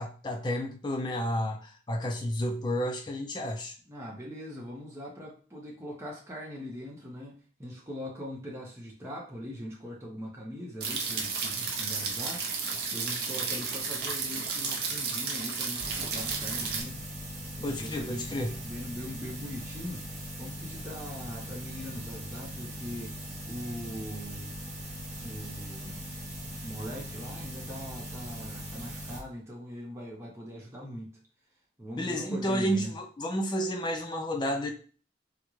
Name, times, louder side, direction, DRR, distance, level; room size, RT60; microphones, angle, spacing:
voice 1, 0.0-3.7 17.6-18.5 32.0-34.7, equal, 25° left, 3 dB, 0.4 m, -31 dB
voice 2, 3.9-17.0 17.6-20.0 20.4-23.1 23.5-24.5 25.1-26.1 26.6-31.1 31.8-32.9, equal, 15° right, -3 dB, 0.7 m, -41 dB
sound 1, 10.8-16.8, right 5 dB, 60° right, 0.6 m, -32 dB
sound 2, 15.8-29.2, equal, 40° right, 1.0 m, -40 dB
3.7 x 2.1 x 3.1 m, 0.39 s
head